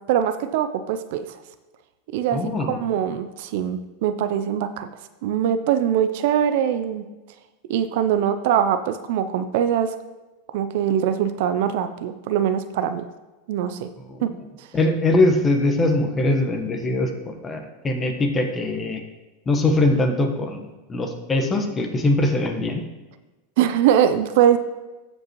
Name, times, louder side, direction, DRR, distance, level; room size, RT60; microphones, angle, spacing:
voice 1, 0.1-1.3 2.1-4.9 5.2-7.0 7.7-9.9 10.5-13.1 13.5-13.9 14.2-14.3 14.6-14.7 23.6-24.6, right 9 dB, 65° right, 11 dB, 0.5 m, -22 dB
voice 2, 2.3-2.8 14.0-14.4 14.7-19.0 19.5-20.6 20.9-22.8, left 2 dB, 20° left, 5 dB, 1.2 m, -22 dB
14.0 x 5.3 x 3.1 m, 1.1 s
hypercardioid pair, 115°, 0 cm